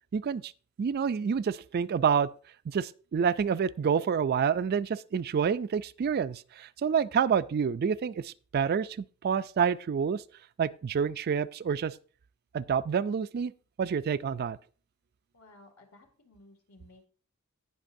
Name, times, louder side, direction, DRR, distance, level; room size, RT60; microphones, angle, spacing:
voice 1, 0.1-0.5 0.8-2.3 2.7-10.2 10.6-11.9 12.5-13.5 13.8-14.6, right 6 dB, 45° right, 0.3 m, -28 dB
voice 2, 15.3-17.1, left 2 dB, 85° left, 2.1 m, -56 dB
17.5 x 5.9 x 2.6 m
head